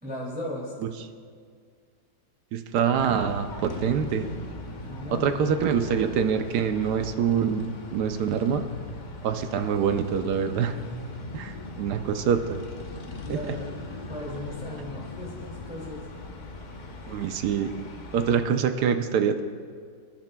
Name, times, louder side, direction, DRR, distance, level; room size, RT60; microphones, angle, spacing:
voice 1, 0.0-0.7 4.7-5.4 11.8-12.0 13.1-13.7 14.0-16.0, left 1 dB, 5° right, -7 dB, 2.2 m, -37 dB
voice 2, 2.5-4.3 5.1-8.6 9.2-10.7 11.3-12.6 13.3-13.5 17.1-17.7 18.1-19.4, right 7 dB, 70° right, 8 dB, 1.1 m, -25 dB
sound 1, 3.0-18.5, left 2 dB, 70° left, 0.4 m, -39 dB
25.5 x 10.5 x 2.2 m, 2.1 s
omnidirectional pair, 2.0 m